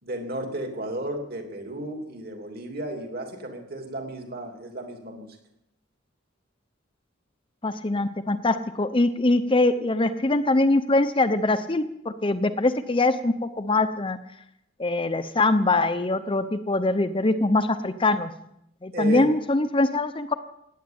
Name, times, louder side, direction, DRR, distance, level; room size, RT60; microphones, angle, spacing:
voice 1, 0.0-5.3 18.9-19.3, right 1 dB, 50° right, 3 dB, 3.0 m, -33 dB
voice 2, 7.6-14.2 14.8-18.3 18.8-20.3, left 2 dB, 25° left, 10 dB, 0.8 m, -23 dB
17.0 x 9.3 x 8.8 m, 0.77 s
head